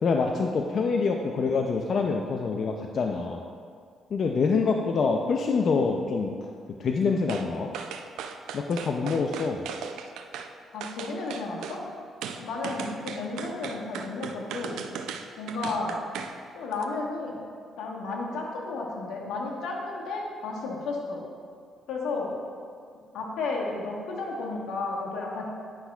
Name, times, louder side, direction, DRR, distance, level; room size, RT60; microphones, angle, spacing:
voice 1, 0.0-3.4 4.1-6.3 6.8-7.7 8.5-9.6, left 4 dB, 55° left, 2 dB, 0.4 m, -26 dB
sound 1, 7.3-7.5 7.7-10.5 10.8-11.8 12.2-16.4 16.7-16.8, right 7 dB, 85° right, 0.4 m, -37 dB
voice 2, 10.7-11.8 12.4-14.8 15.4-16.0 16.5-17.4 17.8-21.2 21.9-22.3 23.1-25.5, left 3 dB, 85° left, -2 dB, 1.2 m, -33 dB
9.9 x 5.8 x 2.3 m, 2.2 s
cardioid pair, 90°, 0 cm